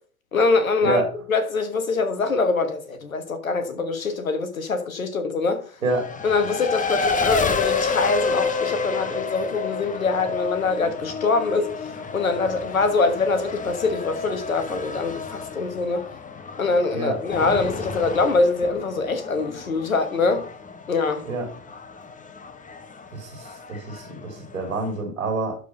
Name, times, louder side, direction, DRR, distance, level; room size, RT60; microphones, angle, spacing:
voice 1, 0.3-1.0 1.3-5.6 6.2-16.0 16.6-20.4 20.9-21.2, left 3 dB, 90° left, 1.5 m, -24 dB
voice 2, 5.8-6.2 16.9-17.2 21.2-21.5 23.1-25.6, right 3 dB, 90° right, 2.6 m, -27 dB
Race car auto racing, 5.9-25.0, left 5 dB, 20° left, 1.2 m, -30 dB
12.0 x 4.9 x 5.2 m
hypercardioid pair, 80°, 40 cm